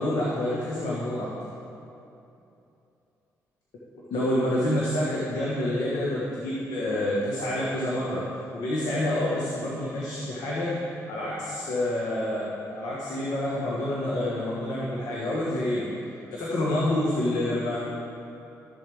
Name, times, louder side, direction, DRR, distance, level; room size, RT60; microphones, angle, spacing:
voice 1, 0.0-1.3 3.9-8.2 8.5-10.8 11.1-15.9 16.3-17.8, left 1 dB, 80° left, -5 dB, 1.4 m, -28 dB
12.5 x 7.1 x 3.5 m, 2.8 s
supercardioid pair, 60°, 7 cm